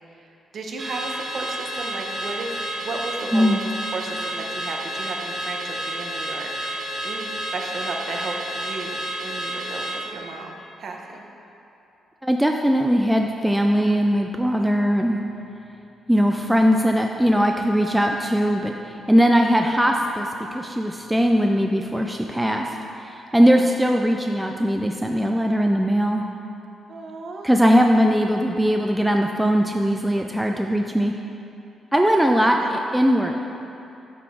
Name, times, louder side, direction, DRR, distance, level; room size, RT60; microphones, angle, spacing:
voice 1, 0.5-3.6 3.9-11.3 23.5-23.7 26.9-27.5 32.6-32.7, right 3 dB, 45° right, 1 dB, 0.9 m, -34 dB
Car / Alarm, 0.8-10.0, right 1 dB, 20° right, 1.3 m, -30 dB
voice 2, 12.2-15.2 16.1-22.7 23.0-26.2 27.4-31.1 31.9-33.4, equal, 5° right, 2 dB, 0.3 m, -20 dB
11.0 x 5.9 x 3.7 m, 2.8 s
wide cardioid pair, 160°, 0 cm